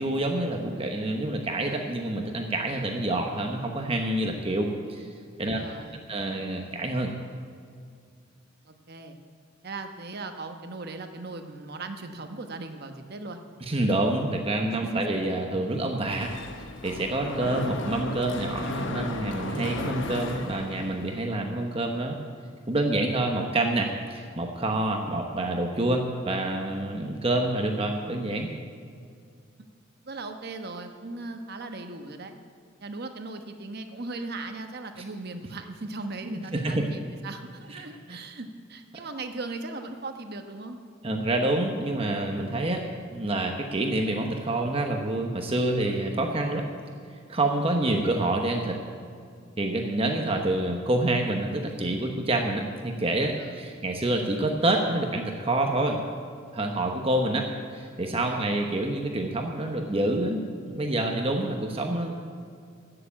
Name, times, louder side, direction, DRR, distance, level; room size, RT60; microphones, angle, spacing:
voice 1, 0.0-5.1 5.4-5.6 6.1-7.1 13.7-16.3 16.8-22.2 22.7-28.5 36.3-36.8 37.7-37.8 38.1-38.2 41.0-42.8 43.1-46.6 47.3-48.8 49.6-56.0 56.5-57.5 57.7-62.1, right 2 dB, 30° right, 3 dB, 1.0 m, -27 dB
voice 2, 5.4-6.0 8.7-9.2 9.6-13.4 14.8-15.0 30.0-32.4 32.8-40.8 53.4-53.6 58.1-58.6, right 3 dB, 55° right, 6 dB, 1.1 m, -38 dB
Mechanisms, 16.1-21.3, left 2 dB, 65° left, 1.1 m, -34 dB
14.0 x 7.0 x 8.7 m, 2.3 s
head